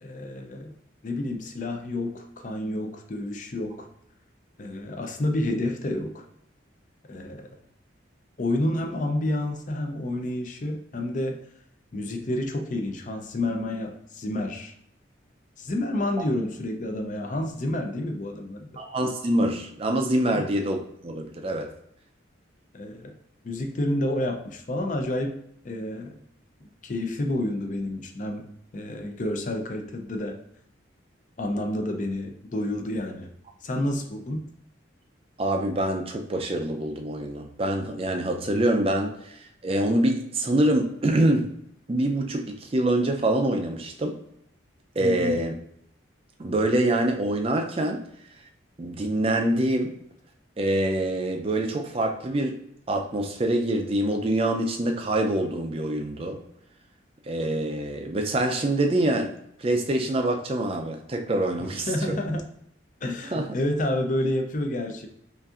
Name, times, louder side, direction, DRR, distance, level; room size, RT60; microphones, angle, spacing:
voice 1, 0.0-0.7 1.0-3.9 4.6-6.2 7.1-7.5 8.4-11.4 11.9-14.7 15.6-18.8 20.3-20.5 22.7-23.1 23.4-25.4 25.6-26.2 26.8-30.4 31.4-33.3 33.6-34.5 45.0-45.4 61.6-62.5 63.0-65.1, left 1 dB, 40° left, 4 dB, 0.5 m, -29 dB
voice 2, 18.8-21.7 35.4-39.3 39.6-41.5 41.9-44.2 45.0-45.5 46.4-48.0 48.8-50.0 50.6-52.6 52.9-56.4 57.3-62.4 63.3-63.5, right 1 dB, 30° right, 3 dB, 0.4 m, -25 dB
5.4 x 2.5 x 2.4 m, 0.72 s
head